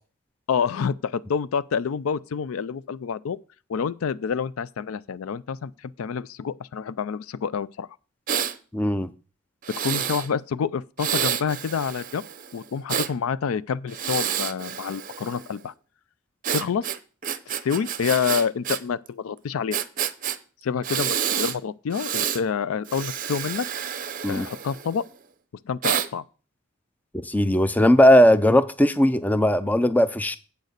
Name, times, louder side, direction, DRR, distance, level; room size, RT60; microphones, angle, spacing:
voice 1, 0.5-3.4 3.7-7.9 9.8-12.2 12.5-15.7 16.5-16.8 17.5-19.8 20.6-23.7 24.3-25.0 25.7-26.2, left 6 dB, 75° left, 0.4 m, -28 dB
Breathing, 8.3-8.5 9.6-10.3 11.0-13.1 13.9-15.5 16.4-18.8 19.1-19.2 19.7-20.4 20.8-21.6 21.9-22.4 22.8-25.0 25.8-26.1, right 9 dB, 40° right, 0.6 m, -29 dB
voice 2, 8.7-9.1 24.2-24.5 27.2-30.4, left 1 dB, 10° left, 0.4 m, -18 dB
8.2 x 6.5 x 6.5 m
head